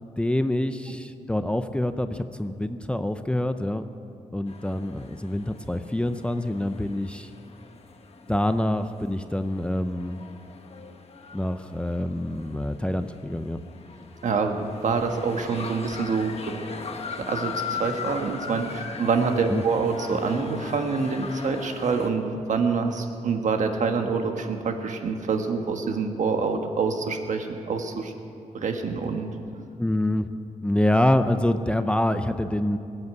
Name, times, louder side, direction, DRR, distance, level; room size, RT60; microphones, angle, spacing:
voice 1, 0.2-3.9 4.3-7.3 8.3-10.2 11.3-13.6 19.5-19.6 29.8-30.3 30.6-32.8, left 1 dB, 10° left, 9 dB, 0.5 m, -26 dB
sound 1, 4.5-22.1, left 5 dB, 50° left, 1.1 m, -39 dB
voice 2, 14.2-16.3 17.3-28.1 28.5-29.3, right 5 dB, 70° right, 5 dB, 1.4 m, -26 dB
20.0 x 8.1 x 8.0 m, 2.6 s
wide cardioid pair, 120°, 13 cm